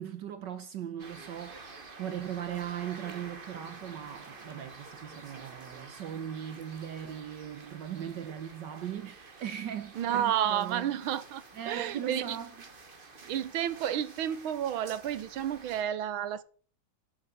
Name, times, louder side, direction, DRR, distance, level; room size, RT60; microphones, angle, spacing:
voice 1, 0.0-1.6 2.0-10.9 11.5-12.5, right 9 dB, 65° right, 1.4 m, -39 dB
sound 1, 1.0-15.8, right 3 dB, 30° right, 1.4 m, -50 dB
voice 2, 9.9-12.4 13.2-16.4, right 10 dB, 90° right, 1.7 m, -31 dB
11.5 x 6.7 x 7.2 m
omnidirectional pair, 2.2 m